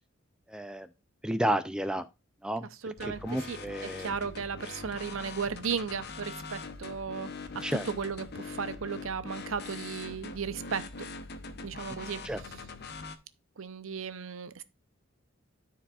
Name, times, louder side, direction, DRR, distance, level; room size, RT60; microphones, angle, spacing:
voice 1, 0.5-0.9 1.2-2.1 2.4-4.1 7.6-7.9 12.2-12.4, right 1 dB, 5° right, 0.4 m, -32 dB
voice 2, 2.8-3.2 3.5-3.6 4.0-7.3 7.5-10.9 11.6-12.2 13.6-14.6, right 6 dB, 70° right, 0.7 m, -35 dB
sound 1, 3.0-13.2, left 4 dB, 50° left, 0.9 m, -42 dB
13.5 x 4.7 x 2.4 m
head